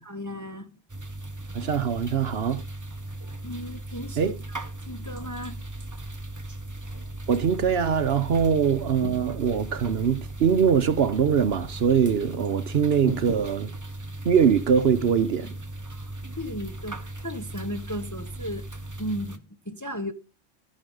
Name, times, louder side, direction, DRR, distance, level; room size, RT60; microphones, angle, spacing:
voice 1, 0.0-0.8 3.4-5.6 15.9-18.7 19.0-20.1, equal, 20° left, 0.6 m, -35 dB
sound 1, 0.9-19.4, right 1 dB, 15° right, 0.8 m, -37 dB
voice 2, 1.5-2.6 4.2-4.4 7.3-13.7 14.2-15.5, right 7 dB, 60° right, 0.9 m, -22 dB
14.5 x 6.3 x 5.3 m
omnidirectional pair, 1.3 m